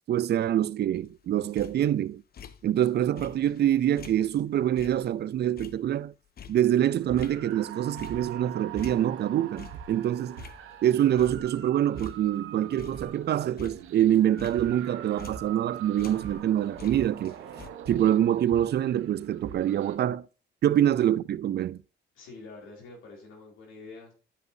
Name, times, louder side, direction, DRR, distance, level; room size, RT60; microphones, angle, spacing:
voice 1, 0.1-2.2 2.6-6.1 6.5-10.4 10.8-17.4 17.9-20.3 20.6-21.8, right 11 dB, 55° right, 0.5 m, -25 dB
sound 1, 0.9-2.9 3.2-8.5 8.8-10.9 11.2-11.7 12.0-15.7 16.0-17.7, left 8 dB, 50° left, 0.7 m, -49 dB
sound 2, 7.0-20.0, right 8 dB, 85° right, 1.1 m, -43 dB
voice 2, 22.1-24.1, left 3 dB, 90° left, 3.9 m, -46 dB
11.5 x 5.3 x 2.8 m
cardioid pair, 90°, 20 cm